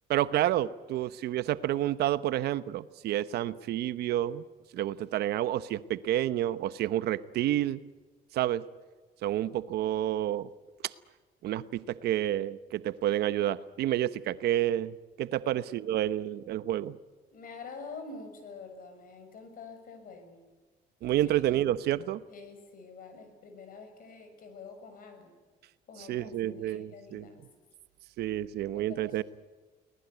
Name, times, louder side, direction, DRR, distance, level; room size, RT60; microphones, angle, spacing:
voice 1, 0.1-4.5 4.7-7.8 8.3-8.7 9.2-10.5 10.8-10.9 11.4-17.0 21.0-22.2 26.0-27.3 28.2-29.2, right 13 dB, 75° right, 15 dB, 1.0 m, -29 dB
voice 2, 17.3-20.4 21.1-21.4 22.3-25.3 25.9-27.5 28.7-29.2, left 4 dB, 55° left, 7 dB, 6.5 m, -47 dB
24.0 x 19.0 x 9.4 m, 1.3 s
cardioid pair, 110°, 17 cm